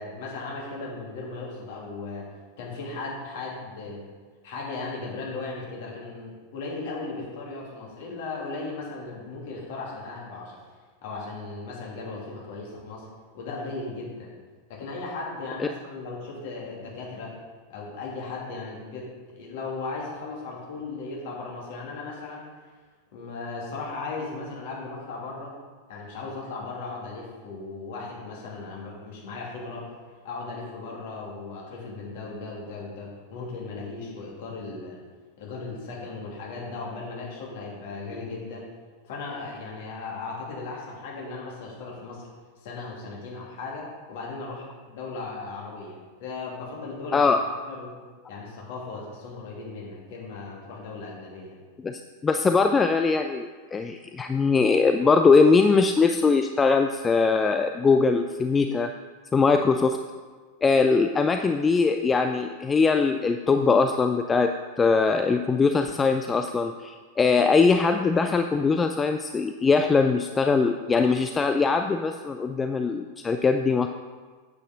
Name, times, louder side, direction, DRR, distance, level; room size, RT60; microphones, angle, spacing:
voice 1, 0.0-2.3 2.6-4.0 4.4-10.6 11.0-13.1 13.3-14.3 14.7-17.3 17.7-22.4 23.1-25.5 25.9-29.8 30.2-35.0 35.4-38.6 39.0-42.3 42.6-47.3 47.7-47.9 48.3-51.5, left 3 dB, 50° left, -3 dB, 2.6 m, -37 dB
voice 2, 51.8-58.9 59.3-60.0 60.6-73.9, left 4 dB, 15° left, 7 dB, 0.4 m, -21 dB
8.0 x 8.0 x 4.0 m, 1.4 s
figure-of-eight pair, 90°, 0 cm